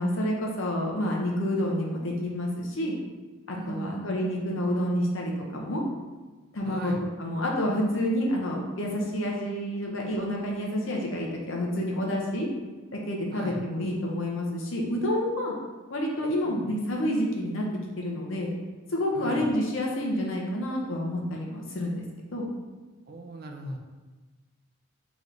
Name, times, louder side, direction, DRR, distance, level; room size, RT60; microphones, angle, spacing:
voice 1, 0.0-3.0 3.5-5.8 6.5-6.9 7.2-12.5 12.9-15.5 15.9-17.7 18.0-18.5 18.9-22.0 22.3-22.5, equal, 70° left, -1 dB, 0.7 m, -29 dB
voice 2, 3.5-4.7 6.6-7.0 13.3-13.6 16.4-16.7 19.1-19.5 23.1-23.8, right 2 dB, 45° right, 3 dB, 0.4 m, -39 dB
3.2 x 3.0 x 3.8 m, 1.3 s
head